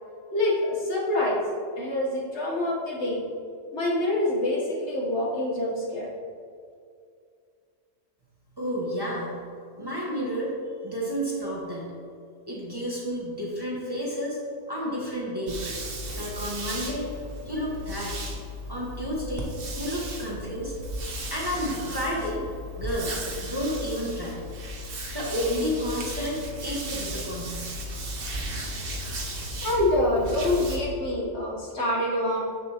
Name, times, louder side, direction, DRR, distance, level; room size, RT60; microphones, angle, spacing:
voice 1, 0.3-1.4 1.8-3.2 3.7-6.1 29.6-32.4, left 1 dB, 60° left, -3 dB, 1.5 m, -26 dB
voice 2, 8.6-9.4 9.8-10.5 10.8-11.9 12.5-14.4 14.7-15.7 16.1-17.1 17.5-18.2 18.7-20.7 21.3-22.4 22.8-23.1 23.4-24.4 25.1-27.7, equal, 20° right, -5 dB, 1.1 m, -31 dB
sound 1, 15.5-30.8, equal, 50° right, 1.0 m, -35 dB
7.2 x 6.7 x 2.9 m, 2.3 s
omnidirectional pair, 1.3 m